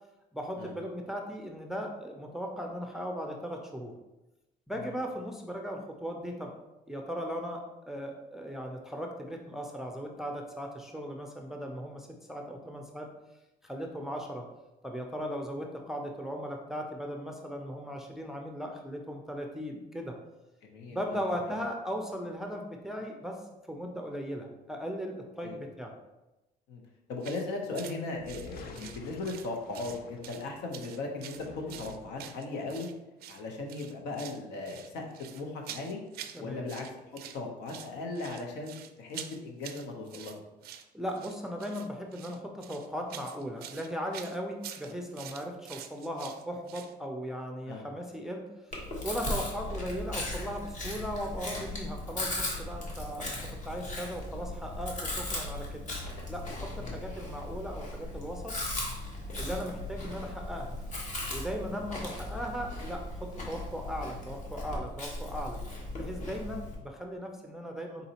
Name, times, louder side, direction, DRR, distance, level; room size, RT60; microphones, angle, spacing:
voice 1, 0.3-3.9 4.7-6.5 6.9-13.1 13.6-14.5 14.8-20.2 20.9-23.4 23.7-26.0 36.3-36.7 40.9-48.4 49.0-53.4 53.6-55.8 56.3-58.6 59.4-60.8 61.3-65.6 66.0-68.1, equal, ahead, 1 dB, 0.4 m, -37 dB
voice 2, 20.6-21.5 25.4-25.6 26.7-26.8 27.1-32.9 33.3-35.1 35.3-36.0 36.4-36.9 37.1-40.4 47.7-47.9 56.8-57.0, left 3 dB, 90° left, 2 dB, 0.8 m, -38 dB
sound 1, 27.2-27.4 27.7-28.0 28.3-29.5 29.7-30.4 30.7-32.9 33.2-33.4 33.7-34.4 34.7-36.4 36.7-37.4 37.7-46.9, right 10 dB, 65° right, 0.4 m, -46 dB
sound 2, 28.1-30.7 31.2-32.3, left 4 dB, 60° left, 0.5 m, -49 dB
Chewing mastication, 48.7-66.7, left 1 dB, 45° left, 1.1 m, -37 dB
4.1 x 3.9 x 2.8 m, 0.99 s
cardioid pair, 110°, 17 cm